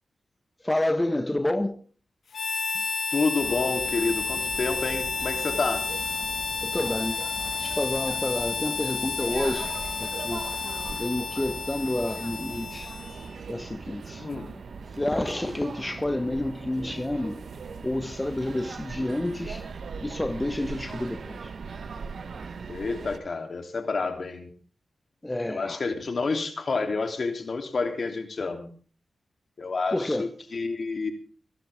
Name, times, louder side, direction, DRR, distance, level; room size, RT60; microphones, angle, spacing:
voice 1, 0.6-1.8 6.6-7.2 7.6-9.7 10.0-10.4 10.9-12.9 13.5-14.3 15.0-17.4 17.8-19.7 20.0-21.5 25.2-25.8 29.9-30.3, left 1 dB, 20° left, 1.4 m, -29 dB
Harmonica, 2.3-13.4, left 5 dB, 80° left, 2.2 m, -31 dB
voice 2, 3.1-5.9 14.2-14.5 22.7-24.5 25.4-28.7 29.6-31.1, left 4 dB, 60° left, 3.2 m, -29 dB
sound 1, 3.4-23.2, right 5 dB, 75° right, 1.2 m, -40 dB
24.5 x 12.0 x 3.6 m
cardioid pair, 60°, 0 cm